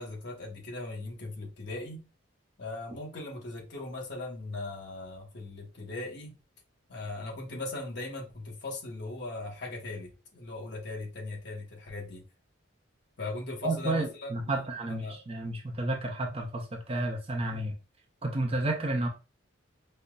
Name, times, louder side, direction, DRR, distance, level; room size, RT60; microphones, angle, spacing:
voice 1, 0.0-2.1 2.6-6.4 6.9-12.3 13.2-15.2 17.5-17.7, left 2 dB, 55° left, 1.0 m, -39 dB
voice 2, 13.6-17.7 18.2-19.1, right 2 dB, 30° right, 0.5 m, -31 dB
5.3 x 2.0 x 2.3 m
head